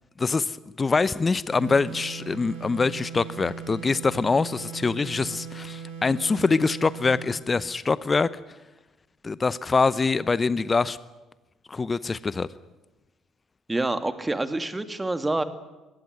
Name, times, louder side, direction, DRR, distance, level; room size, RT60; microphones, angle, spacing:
voice 1, 0.2-8.3 9.2-11.0 11.7-12.5, left 4 dB, 30° left, 18 dB, 0.8 m, -24 dB
sound 1, 1.5-7.4, right 6 dB, 80° right, 6.7 m, -39 dB
voice 2, 13.7-15.4, right 2 dB, 15° right, 11 dB, 2.5 m, -27 dB
23.0 x 18.5 x 9.2 m, 1.1 s
hypercardioid pair, 50°, 0 cm